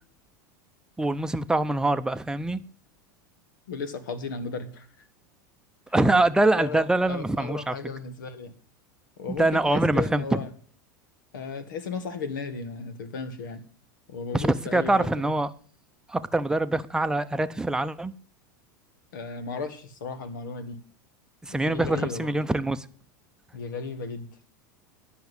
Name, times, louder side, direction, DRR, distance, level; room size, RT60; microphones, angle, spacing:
voice 1, 1.0-2.7 5.9-7.7 9.4-10.2 14.3-15.5 16.1-18.1 21.4-22.9, right 2 dB, 5° right, 0.7 m, -24 dB
voice 2, 3.7-5.0 6.5-8.5 9.2-10.5 11.3-13.6 14.1-15.3 19.1-20.8 21.5-22.3 23.5-24.3, left 4 dB, 80° left, 1.6 m, -35 dB
10.5 x 6.0 x 8.0 m
hypercardioid pair, 100°, 10 cm